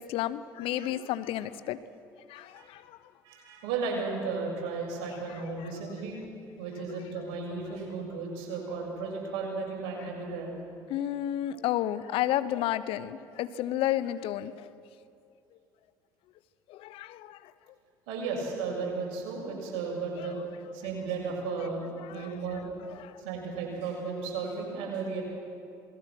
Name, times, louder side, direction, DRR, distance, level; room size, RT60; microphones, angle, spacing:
voice 1, 0.1-1.8 2.3-2.8 10.9-14.5 16.7-17.4 22.1-22.3 23.0-23.1, left 12 dB, 65° left, 15 dB, 0.9 m, -31 dB
voice 2, 3.2-6.2 6.6-10.6 18.1-22.7 23.2-25.2, right 4 dB, 70° right, -1 dB, 7.3 m, -34 dB
27.0 x 21.0 x 6.2 m, 2.6 s
hypercardioid pair, 60°, 10 cm